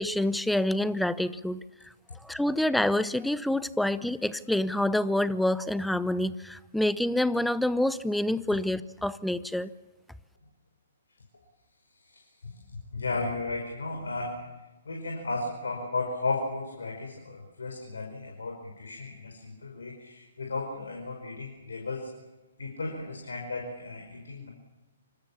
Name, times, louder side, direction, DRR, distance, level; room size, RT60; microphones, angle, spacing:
voice 1, 0.0-1.6 2.2-9.7, left 1 dB, ahead, 17 dB, 0.9 m, -27 dB
voice 2, 12.0-12.6 12.9-14.5 14.9-22.1 22.6-24.5, left 3 dB, 70° left, 2 dB, 5.2 m, -34 dB
26.5 x 25.0 x 7.2 m, 1.1 s
figure-of-eight pair, 125°, 0 cm